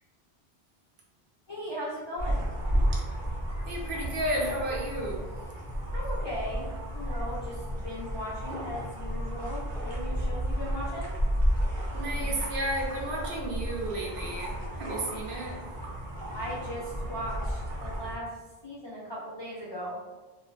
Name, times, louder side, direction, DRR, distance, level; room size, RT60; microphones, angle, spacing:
voice 1, 1.5-2.5 5.9-6.7 6.9-11.1 16.3-18.3 18.6-20.0, equal, 45° left, -8 dB, 0.3 m, -38 dB
sound 1, 2.2-18.2, equal, 60° right, 0.6 m, -32 dB
voice 2, 3.7-5.3 11.9-15.6, right 1 dB, 80° right, -2 dB, 0.9 m, -33 dB
2.4 x 2.2 x 2.3 m, 1.2 s
omnidirectional pair, 1.0 m